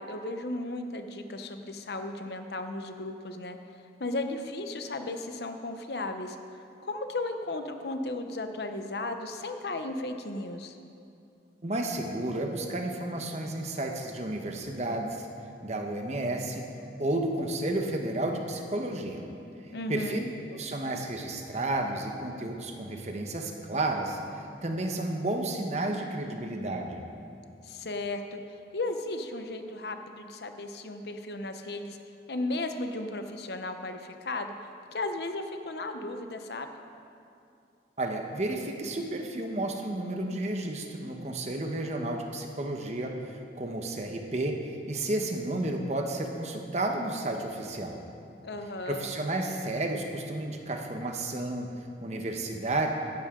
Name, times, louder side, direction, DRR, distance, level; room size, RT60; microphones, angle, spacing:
voice 1, 0.0-3.6 4.0-6.4 6.8-10.8 19.7-20.3 27.6-28.4 28.7-32.0 32.3-34.5 34.9-36.7 48.4-49.1, left 2 dB, 70° left, 7 dB, 0.8 m, -35 dB
voice 2, 11.6-15.3 15.6-16.6 17.0-19.2 19.9-20.2 20.5-27.0 38.0-43.1 43.5-44.6 44.9-48.0 48.9-51.7 52.0-52.9, right 2 dB, 40° right, 3 dB, 1.0 m, -32 dB
16.0 x 10.5 x 3.8 m, 2.6 s
head